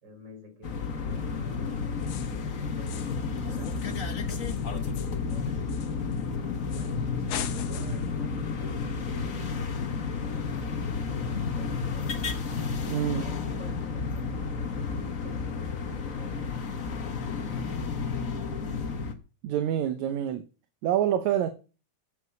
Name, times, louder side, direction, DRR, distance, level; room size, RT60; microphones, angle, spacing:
voice 1, 0.0-3.1 3.5-6.2 6.7-9.9 10.2-12.4 13.0-17.6, equal, 35° right, 5.0 m, -50 dB
sound 1, 0.6-19.1, left 5 dB, 50° left, 1.0 m, -31 dB
sound 2, 2.0-2.5 2.9-3.3 3.6-6.3 6.7-7.0 7.3-8.1, left 11 dB, 85° left, 2.4 m, -41 dB
voice 2, 12.9-13.2 19.4-20.5 20.8-21.5, right 10 dB, 75° right, 2.2 m, -26 dB
9.4 x 8.4 x 7.0 m
omnidirectional pair, 3.4 m